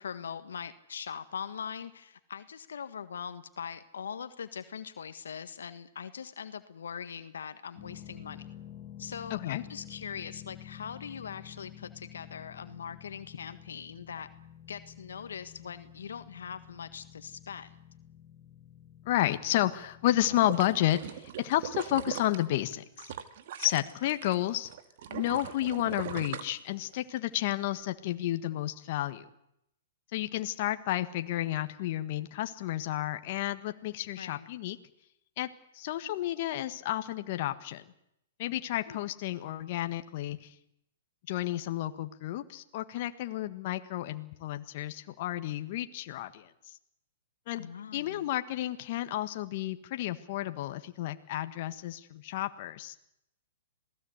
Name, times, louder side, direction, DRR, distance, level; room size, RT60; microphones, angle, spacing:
voice 1, 0.0-8.4 9.0-14.3 14.7-17.7 34.2-34.5 38.9-39.0 47.6-48.3, left 7 dB, 75° left, 10 dB, 1.6 m, -41 dB
sound 1, 7.8-21.0, left 11 dB, 35° left, 6.0 m, -50 dB
voice 2, 9.3-9.6 19.0-23.1 23.6-24.7 25.1-29.2 30.1-34.8 35.4-35.5 35.7-37.8 38.4-40.5 41.3-46.5 47.5-47.7 47.9-52.9, left 14 dB, 50° left, 9 dB, 1.6 m, -31 dB
sound 2, 20.2-24.3 24.7-27.2 27.6-27.7, right 10 dB, 55° right, 2.0 m, -40 dB
27.0 x 18.0 x 8.1 m, 0.79 s
hypercardioid pair, 125°, 0 cm